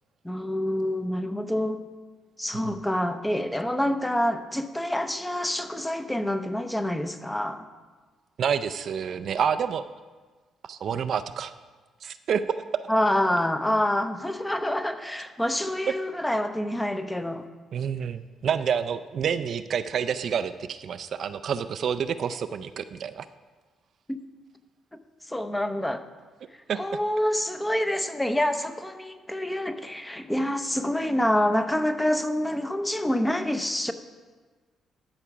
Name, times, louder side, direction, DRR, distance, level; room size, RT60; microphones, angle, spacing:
voice 1, 0.2-1.9 2.4-7.7 12.9-17.5 24.1-24.2 25.2-26.0 26.7-33.9, left 1 dB, 10° left, 9 dB, 0.7 m, -27 dB
voice 2, 8.4-9.8 10.6-11.5 12.0-12.6 17.7-23.3 26.7-26.8, right 7 dB, 60° right, 11 dB, 0.4 m, -28 dB
13.0 x 4.9 x 5.9 m, 1.4 s
cardioid pair, 90°, 0 cm